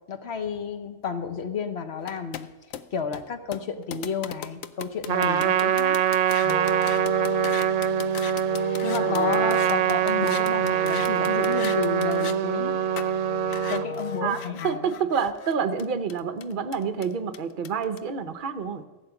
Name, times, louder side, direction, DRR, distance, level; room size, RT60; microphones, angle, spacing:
voice 1, 0.1-2.5 2.9-6.0 8.8-12.8 13.5-14.8, left 6 dB, 55° left, 7 dB, 1.2 m, -31 dB
sound 1, 2.0-12.4 13.0-13.1 13.5-18.0, left 10 dB, 85° left, 1.0 m, -39 dB
Trumpet, 5.1-13.9, right 9 dB, 75° right, 0.9 m, -24 dB
Wind instrument woodwind instrument, 6.4-14.6, left 1 dB, 10° right, 1.3 m, -36 dB
voice 2, 9.0-9.4 14.2-18.8, right 6 dB, 45° right, 9 dB, 0.8 m, -28 dB
15.5 x 6.4 x 8.0 m, 1.2 s
omnidirectional pair, 1.4 m